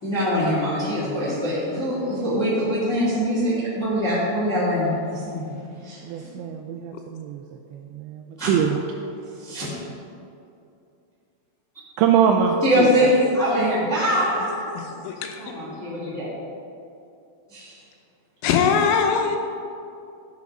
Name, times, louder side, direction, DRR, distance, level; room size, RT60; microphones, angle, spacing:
voice 1, 0.0-5.5 5.8-6.3 8.4-8.5 9.4-9.7 12.6-14.7 15.4-16.3 17.5-17.7, equal, 30° left, -8 dB, 1.4 m, -23 dB
voice 2, 6.0-8.9 12.0-12.6, right 7 dB, 85° right, 3 dB, 2.6 m, -23 dB
voice 3, 14.6-15.4 18.4-19.4, left 6 dB, 80° left, 4 dB, 3.1 m, -22 dB
13.0 x 6.1 x 5.3 m, 2.6 s
omnidirectional pair, 5.7 m